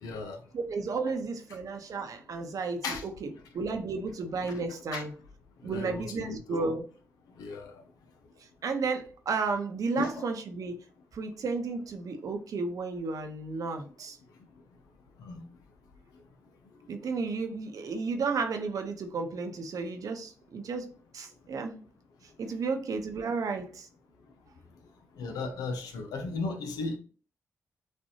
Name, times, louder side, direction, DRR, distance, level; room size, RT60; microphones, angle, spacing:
voice 1, 0.0-0.4 2.8-3.0 4.9-5.0 5.6-6.7 7.4-7.7 10.0-10.2 15.2-15.4 25.2-27.0, left 3 dB, 80° left, 0.8 m, -35 dB
voice 2, 0.5-5.1 5.6-6.8 8.6-10.8 11.1-14.2 16.9-21.8 22.4-23.9, right 4 dB, 65° right, 0.9 m, -33 dB
6.4 x 2.6 x 2.8 m
supercardioid pair, 45°, 6 cm